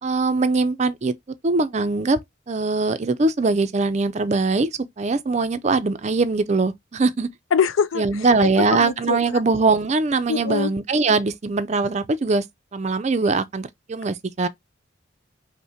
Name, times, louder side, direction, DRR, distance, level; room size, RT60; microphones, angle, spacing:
voice 1, 0.0-1.1 1.4-2.2 2.5-4.7 5.0-7.3 8.0-12.4 12.7-14.5, right 3 dB, 35° right, 0.4 m, -21 dB
voice 2, 7.5-8.0 8.6-9.2 9.5-9.6 10.3-10.7, left 6 dB, 80° left, 0.5 m, -23 dB
5.5 x 2.1 x 4.3 m
head